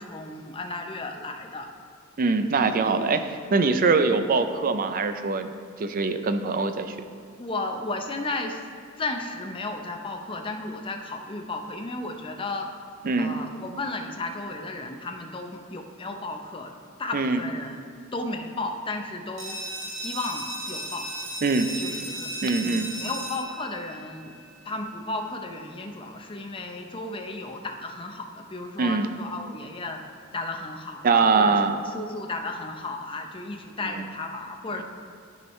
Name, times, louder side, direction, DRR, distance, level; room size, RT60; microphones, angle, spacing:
voice 1, 0.0-1.7 7.4-8.6 9.0-12.7 13.2-16.7 17.0-21.1 21.8-24.4 24.6-30.0 30.3-34.8, left 2 dB, 25° left, 3 dB, 0.6 m, -34 dB
voice 2, 2.2-5.5 5.8-6.9 13.0-13.3 17.1-17.4 21.4-21.7 22.4-22.9 28.8-29.1 31.0-31.8, right 4 dB, 40° right, 9 dB, 0.4 m, -23 dB
sound 1, 19.4-24.8, right 1 dB, 65° right, 1.0 m, -36 dB
13.0 x 4.6 x 3.1 m, 2.2 s
head